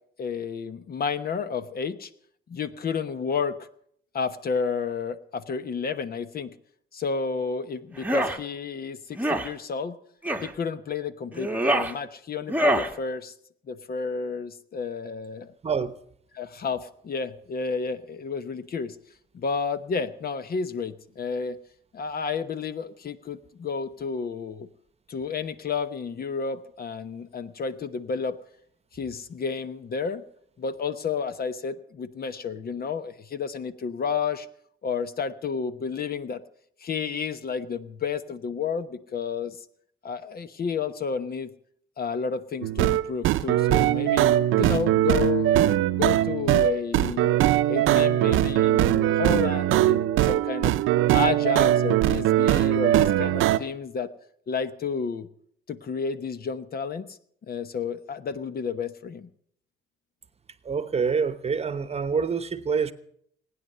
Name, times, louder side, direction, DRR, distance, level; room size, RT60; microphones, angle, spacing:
voice 1, 0.2-2.1 2.5-3.7 4.1-6.5 6.9-10.0 10.4-13.3 13.7-15.5 16.3-19.0 19.3-21.6 21.9-24.7 25.1-28.4 28.9-30.2 30.6-34.5 34.8-36.4 36.8-39.6 40.0-41.5 42.0-44.3 44.6-45.6 45.9-47.3 47.7-50.7 51.1-54.1 54.5-55.3 55.7-57.2 57.5-59.3, left 5 dB, 50° left, 1.0 m, -31 dB
sound 1, 7.9-8.4 9.1-9.5 10.2-10.5 11.3-11.9 12.5-12.9, right 1 dB, 10° right, 1.3 m, -25 dB
voice 2, 15.6-15.9 60.6-62.9, right 5 dB, 30° right, 1.0 m, -26 dB
sound 2, 42.6-53.6, right 13 dB, 90° right, 0.6 m, -21 dB
19.5 x 9.7 x 6.7 m
cardioid pair, 90°, 20 cm